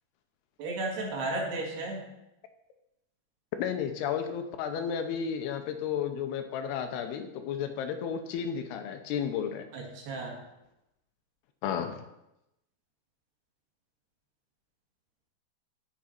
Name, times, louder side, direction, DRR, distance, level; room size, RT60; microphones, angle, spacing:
voice 1, 0.6-2.0 9.7-10.4, right 2 dB, 80° right, -1 dB, 4.1 m, -34 dB
voice 2, 3.5-9.7 11.6-12.0, left 8 dB, 80° left, 7 dB, 2.8 m, -32 dB
14.0 x 6.1 x 4.5 m, 0.89 s
omnidirectional pair, 4.7 m